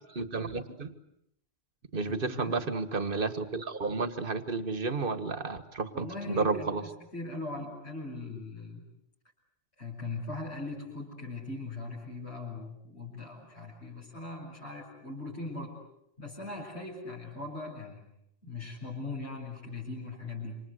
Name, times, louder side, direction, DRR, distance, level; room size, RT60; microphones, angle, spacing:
voice 1, 0.2-0.9 1.9-6.8, right 4 dB, 50° right, 11 dB, 1.8 m, -32 dB
voice 2, 2.0-2.6 5.9-8.8 9.8-15.7 16.2-18.1 18.4-20.6, left 2 dB, 65° left, -6 dB, 6.6 m, -40 dB
28.0 x 26.0 x 8.2 m, 0.77 s
omnidirectional pair, 1.2 m